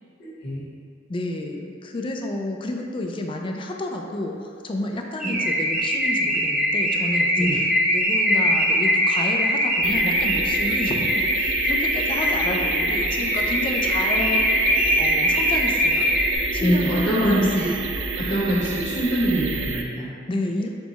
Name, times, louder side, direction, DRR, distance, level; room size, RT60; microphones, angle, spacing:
voice 1, 1.1-7.6 7.9-16.1 16.5-17.8 20.3-20.7, left 2 dB, 25° left, 2 dB, 0.3 m, -30 dB
Car / Alarm, 5.2-16.4, equal, 5° right, 0.7 m, -22 dB
sound 1, 9.8-19.8, right 4 dB, 70° right, 0.3 m, -30 dB
voice 2, 16.6-17.7 18.2-20.1, right 1 dB, 65° left, -9 dB, 1.2 m, -23 dB
4.4 x 2.3 x 4.1 m, 2.3 s
head